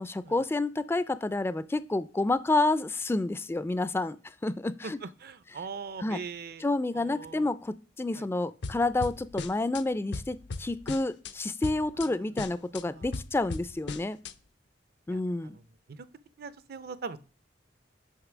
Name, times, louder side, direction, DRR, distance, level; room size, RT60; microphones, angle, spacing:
voice 1, 0.0-4.2 4.4-5.0 6.0-6.2 6.6-14.2 15.1-15.6, left 2 dB, 15° left, 15 dB, 0.3 m, -29 dB
voice 2, 4.8-6.6 6.9-7.5 8.1-8.3 12.8-13.1 15.1-15.6 15.9-16.0 16.4-17.2, right 5 dB, 60° right, 15 dB, 0.5 m, -41 dB
sound 1, 8.6-9.8 10.1-11.3 11.6-12.1 12.4-14.3, left 3 dB, 65° left, 0.5 m, -38 dB
6.5 x 5.1 x 6.1 m, 0.35 s
head